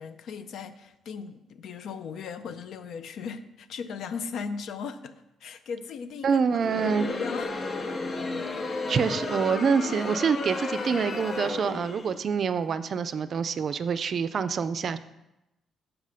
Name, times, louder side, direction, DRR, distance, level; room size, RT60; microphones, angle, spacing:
voice 1, 0.0-6.4 6.8-8.2, left 6 dB, 70° left, 11 dB, 0.5 m, -38 dB
voice 2, 6.2-7.1 8.9-15.0, right 6 dB, 55° right, 12 dB, 0.4 m, -26 dB
Crowd, 6.5-12.2, left 3 dB, 45° left, 0.8 m, -33 dB
5.9 x 5.4 x 4.9 m, 0.91 s
cardioid pair, 90°, 0 cm